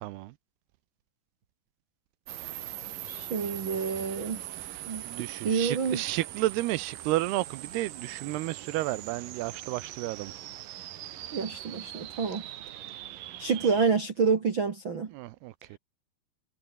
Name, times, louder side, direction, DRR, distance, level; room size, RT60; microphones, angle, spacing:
voice 1, 0.0-0.3 4.6-4.8 5.1-10.3 15.1-15.8, right 17 dB, 80° right, 2.6 m, -32 dB
sound 1, 2.3-13.9, right 13 dB, 65° right, 2.5 m, -41 dB
voice 2, 3.0-4.4 4.9-5.0 5.4-6.0 11.3-12.4 13.4-15.1, right 5 dB, 50° right, 1.5 m, -28 dB
omnidirectional pair, 5.0 m